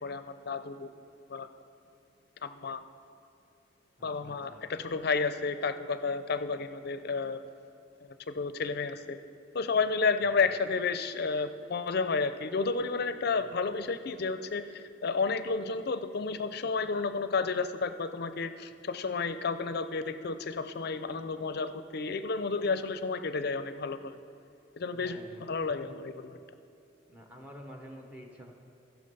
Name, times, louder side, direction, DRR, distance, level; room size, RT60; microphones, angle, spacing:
voice 1, 0.0-0.9 1.3-1.5 2.4-2.8 4.0-7.4 8.3-9.2 9.5-24.2 24.8-26.4, left 4 dB, 55° left, 11 dB, 0.5 m, -31 dB
voice 2, 4.0-4.6 13.4-13.5 24.9-25.5 25.9-26.0 27.1-28.5, equal, 10° right, 1 dB, 0.9 m, -49 dB
15.5 x 6.1 x 5.4 m, 2.7 s
head